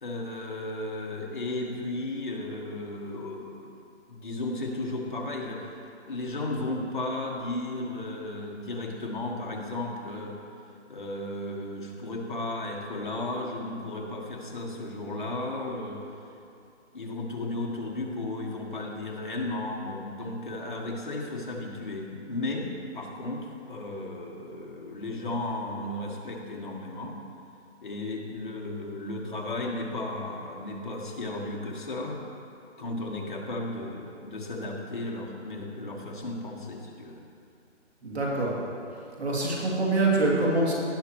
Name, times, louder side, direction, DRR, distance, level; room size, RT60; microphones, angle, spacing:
voice 1, 0.0-3.7 4.1-5.8 6.1-10.4 10.9-16.0 16.9-27.2 27.8-32.2 32.8-37.2, left 2 dB, 40° left, -1 dB, 1.3 m, -34 dB
voice 2, 38.0-38.5 39.2-40.7, right 2 dB, 60° right, -3 dB, 2.5 m, -25 dB
17.5 x 6.3 x 3.0 m, 2.6 s
hypercardioid pair, 175°, 36 cm